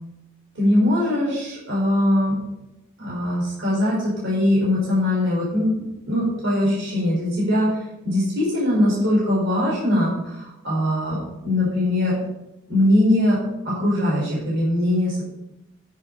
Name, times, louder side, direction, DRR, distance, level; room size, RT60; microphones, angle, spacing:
voice 1, 0.5-2.4 3.0-7.8 8.0-11.2 11.4-12.2 12.7-13.4 13.6-15.2, left 1 dB, 65° right, -7 dB, 4.9 m, -21 dB
10.5 x 8.3 x 5.5 m, 0.90 s
head